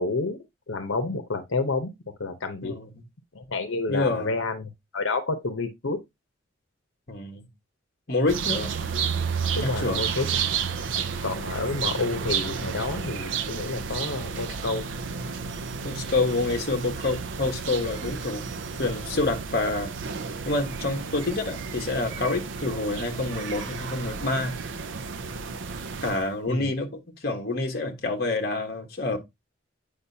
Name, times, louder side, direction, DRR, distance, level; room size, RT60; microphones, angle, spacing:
voice 1, 0.0-1.9 2.2-2.7 3.3-6.0 9.5-10.3 11.2-14.9 26.5-26.7, left 3 dB, 85° left, 0.9 m, -29 dB
voice 2, 3.9-4.4 7.1-7.5 8.1-8.7 9.6-10.0 15.8-18.5 18.8-19.9 20.4-24.6 26.0-29.2, left 2 dB, 50° left, 1.3 m, -27 dB
sound 1, 8.3-26.3, right 6 dB, 70° right, 0.5 m, -32 dB
8.5 x 5.2 x 2.7 m
head